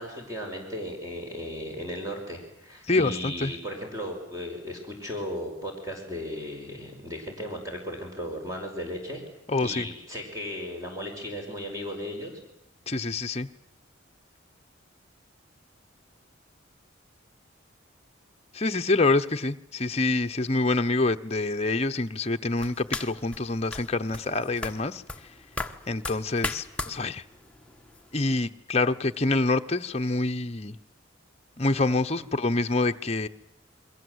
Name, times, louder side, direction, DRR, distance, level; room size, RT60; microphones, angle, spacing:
voice 1, 0.0-9.2 9.6-12.3, equal, 15° right, 1 dB, 5.3 m, -36 dB
voice 2, 2.9-3.5 9.5-9.9 12.9-13.5 18.5-25.0 25.9-27.2 28.1-30.8 31.6-33.3, left 2 dB, 30° left, 7 dB, 0.9 m, -26 dB
sound 1, 22.6-28.4, left 2 dB, 5° left, 1.4 m, -38 dB
28.5 x 22.5 x 8.1 m, 0.82 s
head